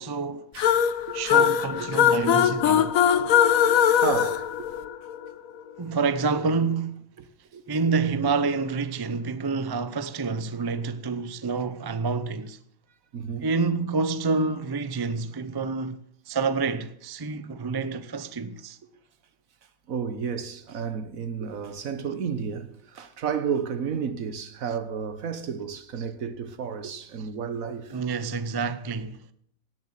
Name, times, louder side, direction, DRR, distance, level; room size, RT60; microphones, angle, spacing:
voice 1, 0.0-0.5 1.1-2.9 5.8-7.1 7.7-12.6 13.4-16.0 16.3-18.8 27.9-29.2, right 4 dB, 25° right, 0.5 m, -28 dB
voice 2, 0.5-1.5 1.8-2.0 4.0-4.7 7.2-7.3 7.5-7.9 13.1-13.5 19.9-28.0, right 6 dB, 70° right, 1.5 m, -32 dB
sound 1, 0.6-5.3, left 9 dB, 75° left, 1.2 m, -21 dB
17.5 x 7.7 x 7.4 m
omnidirectional pair, 1.5 m